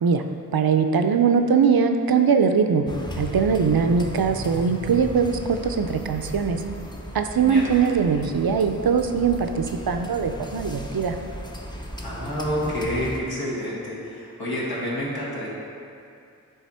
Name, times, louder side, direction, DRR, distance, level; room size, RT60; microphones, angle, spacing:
voice 1, 0.5-2.9 3.1-6.6 7.1-11.2, right 6 dB, 75° right, 6 dB, 0.5 m, -21 dB
sound 1, 2.9-13.2, equal, 10° left, 0.6 m, -36 dB
voice 2, 12.0-15.5, equal, 80° left, -6 dB, 1.6 m, -29 dB
9.3 x 3.4 x 4.3 m, 2.4 s
wide cardioid pair, 45°, 36 cm